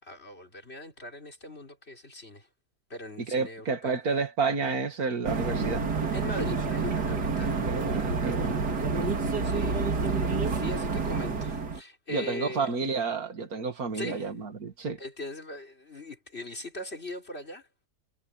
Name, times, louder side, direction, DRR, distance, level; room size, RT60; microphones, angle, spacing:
voice 1, 0.0-2.5 2.9-4.0 6.1-7.6 9.0-9.1 9.4-12.8 13.9-14.3 15.0-17.7, left 1 dB, 40° left, 4.2 m, -41 dB
voice 2, 3.3-5.9 7.4-8.7 12.1-15.0, right 4 dB, 65° right, 2.5 m, -30 dB
sound 1, 5.2-11.8, right 4 dB, 90° right, 2.9 m, -28 dB
omnidirectional pair, 1.7 m